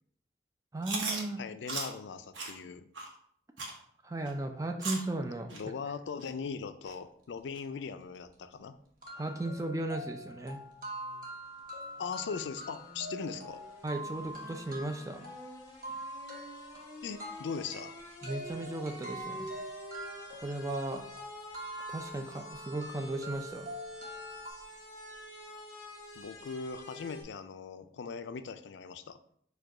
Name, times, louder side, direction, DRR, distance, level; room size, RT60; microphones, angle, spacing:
voice 1, 0.7-1.4 4.0-5.5 9.2-10.6 13.8-15.3 18.2-19.5 20.3-21.0 21.9-23.7, right 2 dB, 15° right, 5 dB, 0.4 m, -36 dB
Chewing mastication, 0.8-1.2 1.7-1.9 2.3-2.5 2.9-3.1 3.6-3.8 4.3-4.4 4.8-5.1 5.5-5.6 6.2-6.3 6.9-7.0 7.5-7.6, right 3 dB, 85° right, 0.9 m, -36 dB
voice 2, 1.4-2.9 5.5-8.7 12.0-13.6 17.0-17.9 26.2-29.2, left 5 dB, 75° left, 11 dB, 0.4 m, -40 dB
sound 1, 8.0-8.1 8.5-8.6 9.0-24.5, right 1 dB, 45° right, 1.0 m, -44 dB
sound 2, 10.5-27.2, left 1 dB, 20° left, 1.1 m, -49 dB
4.8 x 2.3 x 4.7 m, 0.66 s
head